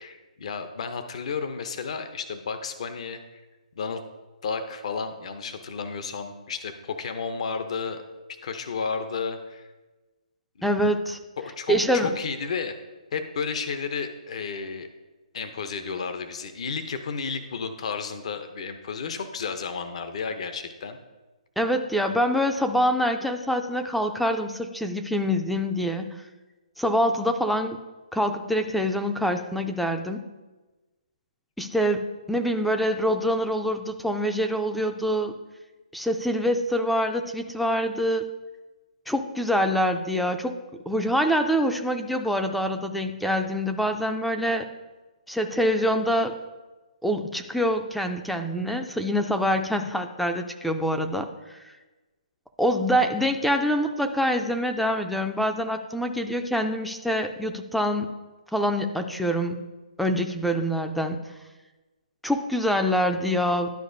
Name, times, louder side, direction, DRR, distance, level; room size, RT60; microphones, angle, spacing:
voice 1, 0.0-3.4 3.8-4.0 4.4-8.0 8.4-9.7 10.6-10.7 11.4-12.8 13.1-14.9 15.3-21.0, left 5 dB, 55° left, 8 dB, 0.6 m, -32 dB
voice 2, 10.6-11.2 11.7-12.1 21.6-26.2 26.8-27.8 28.1-30.2 31.6-35.3 35.9-38.3 39.1-40.6 40.9-44.7 45.3-46.3 47.0-51.6 52.6-58.1 58.5-59.6 60.0-61.2 62.2-63.7, equal, ahead, 6 dB, 0.3 m, -25 dB
11.5 x 4.8 x 2.6 m, 1.2 s
hypercardioid pair, 150°, 4 cm